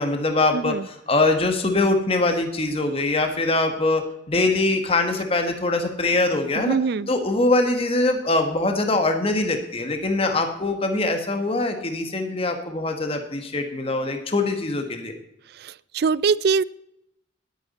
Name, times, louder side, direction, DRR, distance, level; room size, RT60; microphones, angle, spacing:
voice 1, 0.0-6.8 7.1-15.1, left 2 dB, 30° left, 5 dB, 1.3 m, -23 dB
voice 2, 0.5-0.8 6.6-7.1 15.6-16.6, right 5 dB, 55° right, 20 dB, 0.4 m, -22 dB
19.0 x 9.2 x 4.2 m, 0.81 s
head